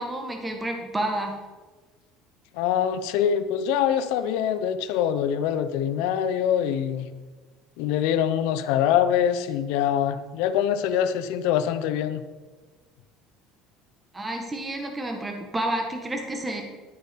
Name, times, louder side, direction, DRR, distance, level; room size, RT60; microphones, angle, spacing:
voice 1, 0.0-1.4 14.1-16.6, right 1 dB, 10° right, 3 dB, 1.6 m, -30 dB
voice 2, 2.5-7.1 7.8-12.2, left 9 dB, 80° left, 11 dB, 1.0 m, -24 dB
12.0 x 8.9 x 5.3 m, 1.3 s
cardioid pair, 150°, 0 cm